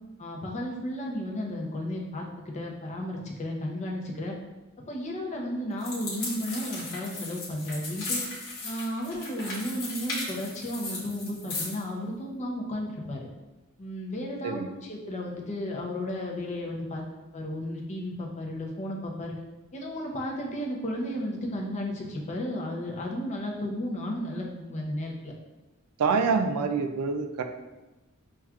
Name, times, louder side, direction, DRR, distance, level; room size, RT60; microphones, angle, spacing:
voice 1, 0.2-4.4 4.9-8.2 8.6-13.3 13.8-14.6 14.9-17.0 17.3-19.3 19.7-25.3, left 1 dB, 30° left, -1 dB, 0.6 m, -33 dB
sound 1, 5.8-11.8, left 2 dB, 60° left, 1.0 m, -36 dB
voice 2, 26.0-27.4, right 5 dB, 85° right, 7 dB, 0.4 m, -26 dB
5.6 x 2.4 x 2.3 m, 1.1 s
head